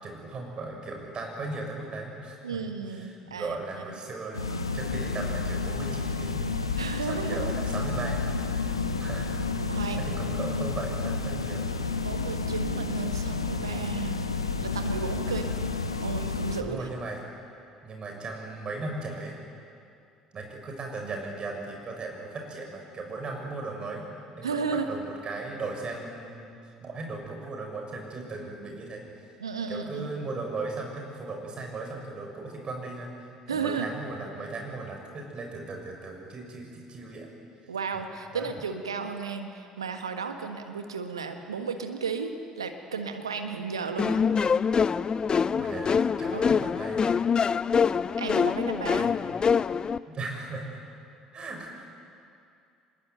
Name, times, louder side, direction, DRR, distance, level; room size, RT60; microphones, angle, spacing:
voice 1, 0.0-2.6 2.9-4.4 4.7-6.5 7.0-8.2 9.0-9.3 9.7-11.8 15.3-15.7 16.6-17.2 17.8-19.3 20.3-24.1 24.3-29.2 29.7-33.1 33.5-37.3 38.3-38.5 45.5-47.0 49.0-49.2 50.1-50.8 51.3-51.8, right 3 dB, 35° right, 1 dB, 6.5 m, -37 dB
voice 2, 2.4-3.6 6.8-7.5 9.7-10.1 12.0-14.2 14.6-15.4 16.0-16.8 24.4-24.9 29.4-30.1 33.5-33.9 37.7-44.2 46.3-46.6 48.2-49.1, right 5 dB, 85° right, 6 dB, 1.5 m, -33 dB
sound 1, 4.3-16.6, left 4 dB, 85° left, 1.0 m, -30 dB
sound 2, 44.0-50.0, left 6 dB, 30° left, 0.6 m, -25 dB
24.5 x 21.5 x 9.3 m, 2.5 s
figure-of-eight pair, 55°, 3 cm